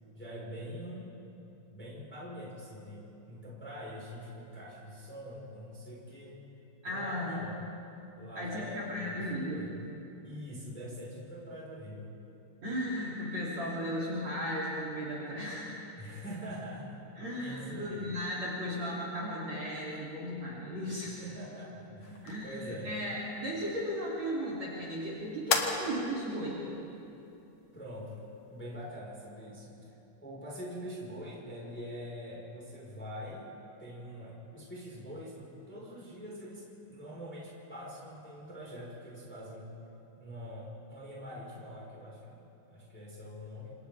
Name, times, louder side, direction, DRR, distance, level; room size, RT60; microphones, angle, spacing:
voice 1, 0.1-1.1 1.7-6.4 6.8-7.6 8.2-9.8 10.2-12.1 16.0-17.0 17.4-18.1 21.2-23.0 27.7-28.2 28.5-29.9 30.2-33.5 33.8-39.7 40.1-42.4 42.7-43.7, equal, ahead, -5 dB, 4.3 m, -44 dB
voice 2, 6.8-7.4 8.4-9.7 12.6-15.7 17.2-21.2 22.2-26.6, equal, 40° right, -6 dB, 3.9 m, -36 dB
sound 1, 22.0-28.9, left 5 dB, 65° left, 1.7 m, -39 dB
28.5 x 26.5 x 3.6 m, 2.8 s
omnidirectional pair, 5.1 m